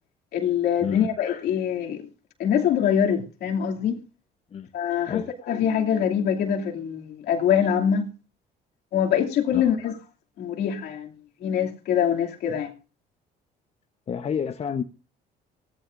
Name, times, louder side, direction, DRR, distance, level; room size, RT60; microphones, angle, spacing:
voice 1, 0.3-2.1 2.4-4.0 4.7-8.1 8.9-10.0 10.4-11.1 11.4-12.7, left 8 dB, 70° left, 2.7 m, -24 dB
voice 2, 14.1-14.8, left 7 dB, 40° left, 1.0 m, -29 dB
18.0 x 14.0 x 2.6 m
cardioid pair, 110°, 17 cm